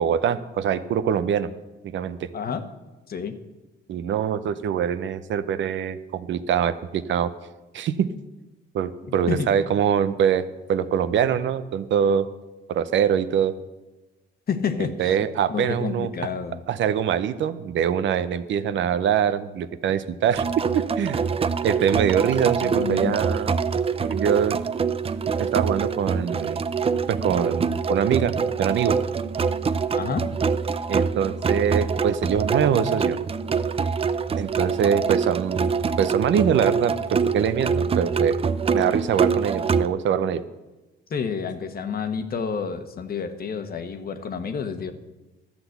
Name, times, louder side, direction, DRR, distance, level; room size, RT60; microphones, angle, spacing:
voice 1, 0.0-1.5 1.8-2.3 3.9-7.3 7.7-8.1 8.7-12.3 12.7-13.5 14.8-16.1 16.7-21.2 21.6-23.5 24.0-24.6 25.4-26.6 27.1-28.3 28.6-29.0 30.9-33.2 34.4-35.7 36.0-38.4 38.7-40.4, right 8 dB, 70° right, 13 dB, 0.7 m, -23 dB
voice 2, 2.3-2.7 3.1-3.4 9.3-9.5 14.5-15.2 15.5-16.6 22.6-23.1 29.9-30.3 41.1-44.9, left 6 dB, 50° left, 9 dB, 1.2 m, -29 dB
sound 1, 20.3-39.9, right 5 dB, 30° right, 0.5 m, -25 dB
12.5 x 6.0 x 8.0 m, 1.1 s
cardioid pair, 90°, 20 cm